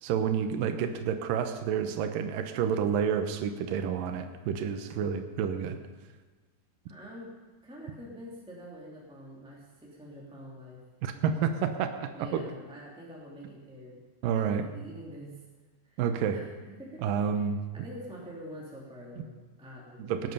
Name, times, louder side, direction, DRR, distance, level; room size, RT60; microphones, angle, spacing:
voice 1, 0.0-5.8 11.0-12.4 14.2-14.6 16.0-16.4 17.0-17.6 20.0-20.3, right 7 dB, 80° right, 7 dB, 2.0 m, -29 dB
voice 2, 6.9-7.3 7.6-10.8 12.1-14.0 14.3-15.4 15.8-16.0 16.3-17.0 17.3-17.4 17.7-20.3, equal, ahead, -5 dB, 1.7 m, -46 dB
18.5 x 11.0 x 5.5 m, 1.3 s
omnidirectional pair, 5.1 m